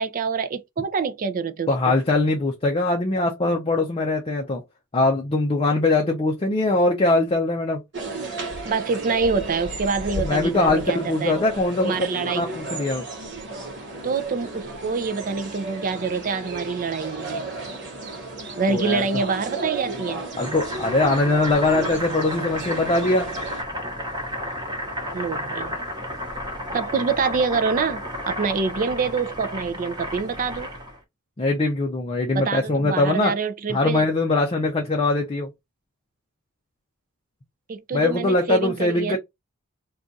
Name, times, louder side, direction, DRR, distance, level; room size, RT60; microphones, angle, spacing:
voice 1, 0.0-2.0 8.6-11.3 11.8-12.4 14.0-17.4 18.6-20.2 25.1-25.8 26.7-30.7 32.3-34.1 37.7-39.2, right 5 dB, 40° right, 0.4 m, -26 dB
voice 2, 1.7-4.6 4.9-7.8 10.2-13.1 18.7-19.0 20.4-23.3 31.4-33.3 33.7-35.5 37.9-39.2, left 2 dB, 25° left, 0.5 m, -22 dB
sound 1, 7.9-23.6, right 2 dB, 55° right, 1.1 m, -34 dB
Boiling, 20.3-31.0, equal, 20° right, 0.9 m, -32 dB
2.4 x 2.3 x 3.9 m
head